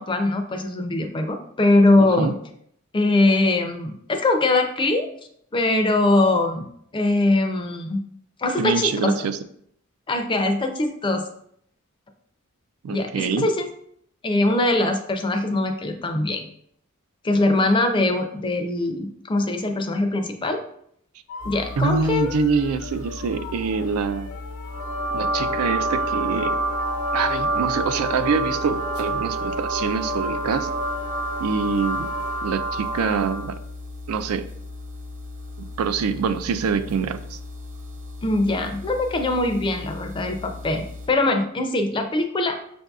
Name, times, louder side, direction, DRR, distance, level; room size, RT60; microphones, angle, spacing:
voice 1, 0.0-2.3 2.9-5.1 5.5-6.7 6.9-8.0 8.4-9.1 10.1-11.2 12.9-13.7 14.2-16.4 17.2-20.6 21.4-22.3 38.2-42.6, left 2 dB, 25° left, 5 dB, 0.4 m, -22 dB
voice 2, 2.0-2.3 8.6-9.4 12.8-13.5 21.8-24.3 25.1-26.6 27.1-30.7 31.4-32.1 32.4-33.6 34.1-34.5 35.6-37.4, right 5 dB, 85° right, 11 dB, 0.4 m, -25 dB
sound 1, 21.3-32.5, left 5 dB, 80° left, 0.4 m, -40 dB
sound 2, 21.4-41.1, left 3 dB, 35° right, 0.7 m, -38 dB
sound 3, 24.7-33.5, right 2 dB, 55° right, 1.1 m, -27 dB
6.3 x 2.6 x 2.3 m, 0.68 s
head